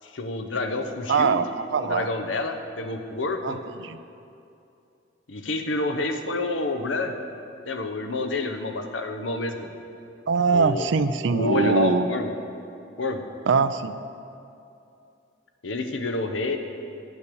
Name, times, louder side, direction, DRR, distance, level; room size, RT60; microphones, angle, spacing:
voice 1, 0.0-1.4 1.8-3.6 5.3-7.1 7.6-9.7 10.5-10.9 11.3-12.3 13.0-13.2 15.6-16.6, left 2 dB, 90° left, 6 dB, 0.9 m, -28 dB
voice 2, 1.1-2.1 3.4-4.0 10.3-12.1 13.5-14.0, right 5 dB, 70° right, 12 dB, 0.5 m, -23 dB
9.5 x 8.3 x 6.9 m, 2.6 s
head